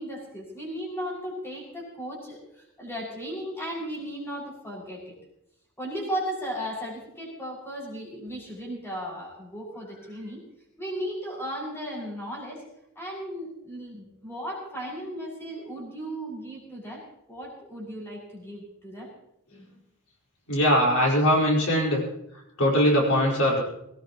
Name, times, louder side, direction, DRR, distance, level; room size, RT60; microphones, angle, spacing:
voice 1, 0.0-5.1 5.8-10.4 10.8-12.6 12.9-17.0 17.3-19.1, equal, 10° left, -4 dB, 6.3 m, -36 dB
voice 2, 20.5-22.0 22.6-23.6, equal, 80° left, -2 dB, 5.1 m, -21 dB
20.5 x 18.5 x 3.1 m, 0.81 s
head